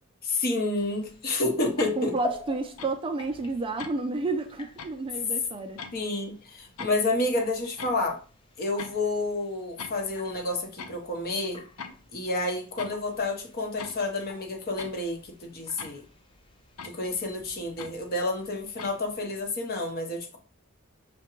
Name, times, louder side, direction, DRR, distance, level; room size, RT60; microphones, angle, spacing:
voice 1, 0.2-2.1 5.9-8.2 8.6-11.6 12.1-16.0 16.8-20.4, left 2 dB, 45° left, 0.9 m, -29 dB
sound 1, 0.8-19.5, left 2 dB, 25° left, 0.5 m, -46 dB
sound 2, 1.8-2.0 2.8-2.9 3.8-4.0 4.8-4.9 5.8-6.0 6.8-6.9 7.8-8.0 8.8-9.0 9.8-10.2 10.8-11.0 11.8-12.2 12.8-13.1 13.8-14.1 14.8-15.0 15.8-16.2 16.8-17.0 17.8-18.0 18.8-18.9, left 5 dB, 75° left, 0.5 m, -41 dB
voice 2, 2.0-5.8, right 3 dB, 25° right, 0.4 m, -31 dB
5.8 x 2.2 x 3.0 m
head